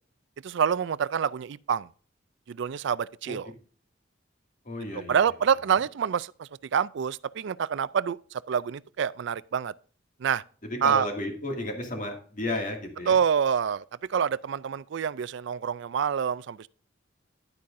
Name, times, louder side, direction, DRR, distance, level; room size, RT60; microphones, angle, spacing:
voice 1, 0.4-1.9 2.5-3.5 5.1-9.7 10.2-10.4 10.8-11.1 13.1-13.8 14.1-16.7, right 7 dB, 70° right, 0.4 m, -27 dB
voice 2, 4.6-5.2 10.6-13.1, left 1 dB, 45° left, 2.3 m, -33 dB
11.0 x 8.4 x 2.6 m
head